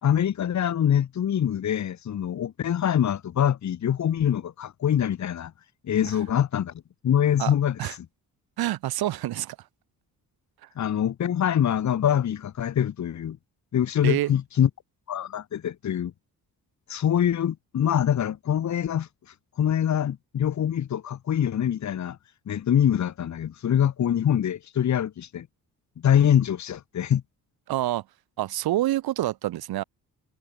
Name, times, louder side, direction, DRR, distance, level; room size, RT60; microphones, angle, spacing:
voice 1, 0.0-5.5 5.8-6.7 7.0-7.8 10.8-13.4 13.7-14.7 15.1-16.1 16.9-19.1 19.6-22.2 22.5-25.5 26.0-27.2, left 9 dB, 50° left, 1.9 m, -24 dB
voice 2, 8.6-9.6 14.0-14.3 27.7-28.0 28.4-29.8, right 14 dB, 80° right, 1.2 m, -27 dB
cardioid pair, 155°, 36 cm